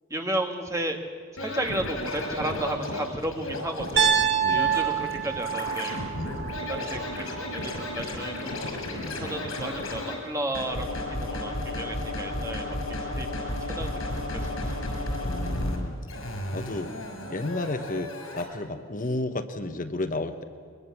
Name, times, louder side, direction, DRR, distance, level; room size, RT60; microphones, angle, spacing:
voice 1, 0.1-1.0 1.4-4.2 4.5-6.0 6.7-8.6 9.1-12.7 13.1-13.3 13.6-13.9 14.4-14.5, right 1 dB, 15° right, 4 dB, 1.6 m, -33 dB
Scratching (performance technique), 1.4-10.2 10.5-15.8 16.1-18.4, left 1 dB, 85° left, 6.1 m, -33 dB
Piano, 4.0-8.0, right 8 dB, 60° right, 1.8 m, -27 dB
voice 2, 15.2-16.0 16.5-16.9 17.3-20.4, left 2 dB, 40° left, 8 dB, 1.0 m, -32 dB
22.0 x 21.5 x 7.2 m, 2.2 s
head